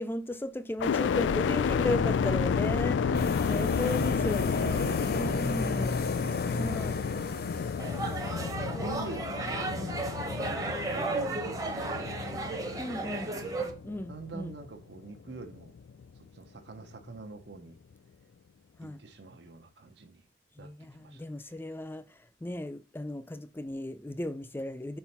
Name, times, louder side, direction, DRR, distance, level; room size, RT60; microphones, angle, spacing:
voice 1, 0.0-3.0 3.5-6.0 6.6-7.0 12.8-13.3 13.8-14.6 18.8-19.0 20.6-25.0, left 1 dB, 10° left, 0.4 m, -35 dB
sound 1, 0.8-14.8 15.3-16.0, left 6 dB, 85° left, 0.3 m, -31 dB
voice 2, 3.0-5.7 6.2-7.7 8.8-12.9 13.3-13.6 14.1-15.7 16.1-17.8 18.8-20.3 20.6-21.6, right 3 dB, 70° right, 0.8 m, -46 dB
sound 2, 3.1-8.6, left 3 dB, 60° left, 0.7 m, -33 dB
sound 3, 7.8-13.7, right 2 dB, 20° right, 0.8 m, -34 dB
4.5 x 4.3 x 5.6 m
head